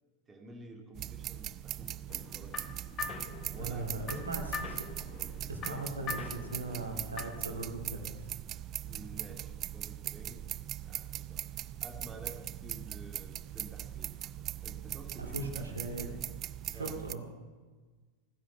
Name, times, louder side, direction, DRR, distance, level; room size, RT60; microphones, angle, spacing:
voice 1, 0.3-2.0 2.3-2.7 3.5-4.4 5.6-5.9 8.8-10.5 10.9-11.4 11.8-14.1 14.6-15.7 16.6-17.0, right 1 dB, 15° right, 2 dB, 2.4 m, -50 dB
sound 1, 1.0-17.1, right 12 dB, 30° right, 0.4 m, -40 dB
sound 2, 2.1-7.5, left 6 dB, 30° left, 1.4 m, -43 dB
voice 2, 3.6-4.8 5.5-8.3 15.2-16.1 16.7-17.2, right 2 dB, 75° right, 3 dB, 2.3 m, -39 dB
16.5 x 10.0 x 7.3 m, 1.4 s
figure-of-eight pair, 90°, 0 cm